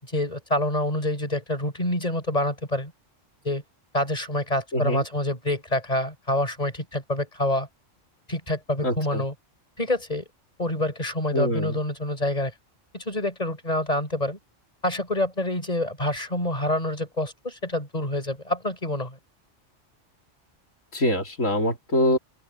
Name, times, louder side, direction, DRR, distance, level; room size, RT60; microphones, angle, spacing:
voice 1, 0.0-2.9 3.4-3.6 3.9-7.7 8.3-9.3 9.8-10.2 10.6-12.5 12.9-14.4 14.8-19.2, left 1 dB, 30° left, 6.2 m, -27 dB
voice 2, 4.7-5.0 8.8-9.2 11.3-11.8 20.9-22.2, left 1 dB, 90° left, 3.7 m, -24 dB
open air
omnidirectional pair, 1.3 m